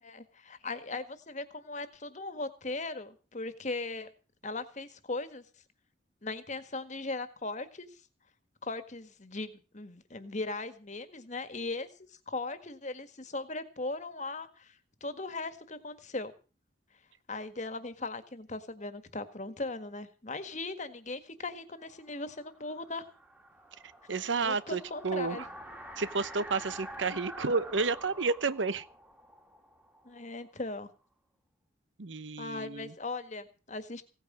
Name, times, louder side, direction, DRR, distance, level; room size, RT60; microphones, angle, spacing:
voice 1, 0.0-4.1 4.4-5.4 6.2-7.9 8.6-11.9 12.3-14.7 15.0-16.3 17.3-23.0 24.4-25.4 30.0-30.9 32.4-34.0, left 3 dB, 40° left, 1.7 m, -38 dB
sound 1, 21.9-30.7, right 1 dB, 10° right, 2.0 m, -48 dB
voice 2, 23.8-25.5 26.0-28.9 32.0-32.9, right 4 dB, 85° right, 0.9 m, -31 dB
17.0 x 9.3 x 7.4 m
head